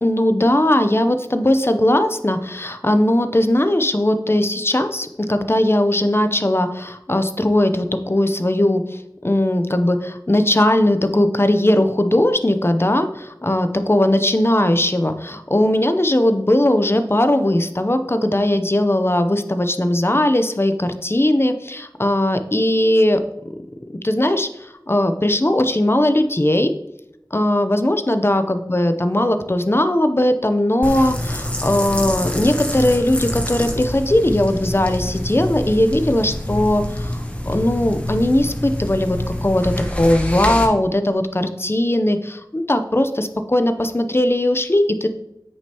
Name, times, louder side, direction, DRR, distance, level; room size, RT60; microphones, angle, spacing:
voice 1, 0.0-23.2 24.0-26.7 27.3-45.1, left 1 dB, 35° left, 9 dB, 0.7 m, -19 dB
sound 1, 30.8-40.7, left 1 dB, 20° left, 1.3 m, -26 dB
8.8 x 6.1 x 2.9 m, 0.84 s
wide cardioid pair, 40°, 7 cm